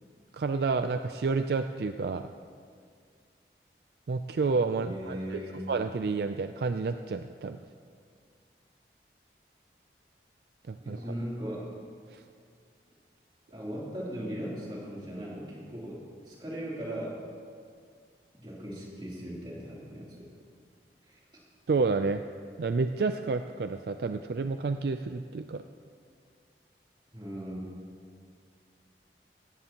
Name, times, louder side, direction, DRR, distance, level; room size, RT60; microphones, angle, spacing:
voice 1, 0.3-2.3 4.1-5.4 5.7-7.6 10.7-11.0 12.1-12.2 21.7-22.2 22.6-25.6, right 4 dB, 60° right, 8 dB, 0.4 m, -30 dB
voice 2, 4.8-5.7 10.8-11.7 13.5-17.2 18.4-20.3 21.1-21.2 27.1-27.6, equal, 25° right, -6 dB, 3.1 m, -38 dB
17.5 x 14.5 x 2.9 m, 2.1 s
head